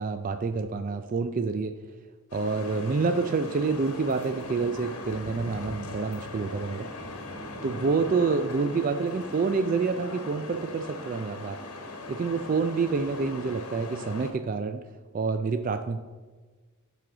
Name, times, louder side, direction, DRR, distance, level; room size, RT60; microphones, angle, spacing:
voice 1, 0.0-1.7 2.3-6.9 7.6-11.6 12.1-14.8 15.1-16.0, right 4 dB, 40° right, 9 dB, 0.3 m, -28 dB
sound 1, 2.3-14.3, left 2 dB, 90° left, 1.2 m, -40 dB
10.5 x 4.9 x 3.9 m, 1.4 s
head